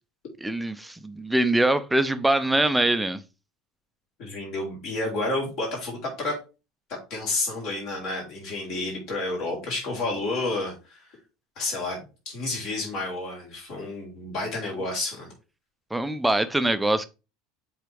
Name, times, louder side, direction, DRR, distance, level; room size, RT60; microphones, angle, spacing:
voice 1, 0.4-3.2 15.9-17.1, right 1 dB, 5° right, 0.6 m, -23 dB
voice 2, 4.2-6.4 7.1-11.0 11.6-15.3, left 2 dB, 50° left, 3.7 m, -30 dB
7.4 x 4.1 x 3.4 m
figure-of-eight pair, 70°, 0 cm